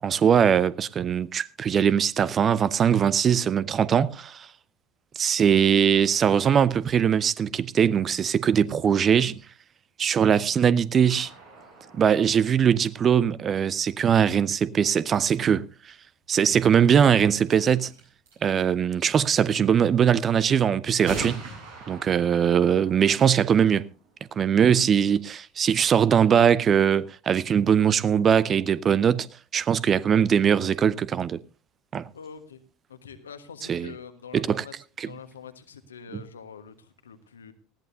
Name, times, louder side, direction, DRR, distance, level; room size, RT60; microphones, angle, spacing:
voice 1, 0.0-4.5 5.2-9.4 10.0-11.3 12.0-15.9 16.3-17.9 18.4-21.4 21.9-23.9 24.4-31.4 31.9-32.1 33.7-33.9 34.3-34.6 35.0-35.1, right 8 dB, 30° right, 0.6 m, -21 dB
sound 1, 11.1-13.8 16.4-16.5 17.0-17.1 17.4-17.6 17.9-18.5 19.7-19.8 21.1-24.6, right 3 dB, 70° right, 7.2 m, -42 dB
voice 2, 32.1-32.6 32.9-34.7 35.0-37.5, left 6 dB, 75° left, 1.3 m, -44 dB
19.0 x 14.5 x 2.7 m
figure-of-eight pair, 70°, 0 cm